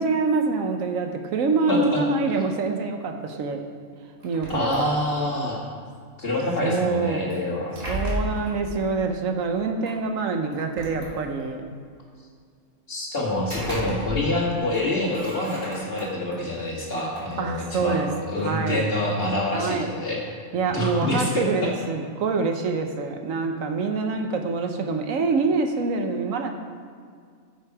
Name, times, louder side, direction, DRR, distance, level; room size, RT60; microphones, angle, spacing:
voice 1, 0.0-3.7 4.2-5.0 6.6-7.4 7.9-11.7 17.4-18.1 18.4-18.8 19.5-19.9 20.5-26.5, right 4 dB, 75° right, 5 dB, 1.2 m, -25 dB
voice 2, 1.7-2.0 4.5-5.6 6.2-7.7 12.9-20.2 20.7-21.7, left 1 dB, 45° left, -3 dB, 2.1 m, -26 dB
sound 1, 4.2-5.3 7.3-8.6 9.9-10.0 10.5-11.6 13.2-14.4 14.7-16.4 16.9-18.5, equal, 30° right, 2.1 m, -35 dB
13.0 x 6.2 x 4.8 m, 2.1 s
omnidirectional pair, 1.4 m